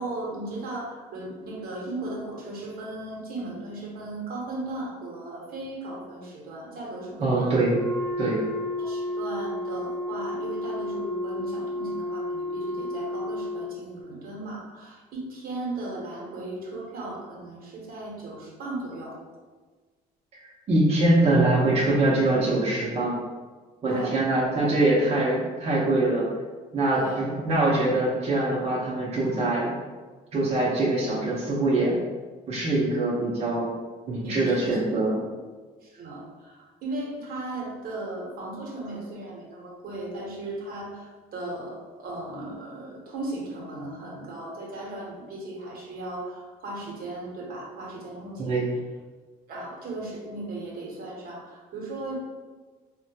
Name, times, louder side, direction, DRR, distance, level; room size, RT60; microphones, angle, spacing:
voice 1, 0.0-7.6 8.8-19.2 23.9-24.2 26.9-27.2 34.2-34.8 35.8-48.7 49.5-52.2, right 2 dB, 60° right, -3 dB, 0.9 m, -36 dB
voice 2, 7.2-7.7 8.2-8.4 20.7-23.2 23.8-26.3 26.7-29.8 30.3-32.0 32.5-33.7 34.1-35.2 48.4-48.7, right 2 dB, 40° right, -6 dB, 0.7 m, -23 dB
Wind instrument woodwind instrument, 7.6-13.8, left 1 dB, 15° left, 0.9 m, -31 dB
3.5 x 2.2 x 2.7 m, 1.4 s
cardioid pair, 110°, 17 cm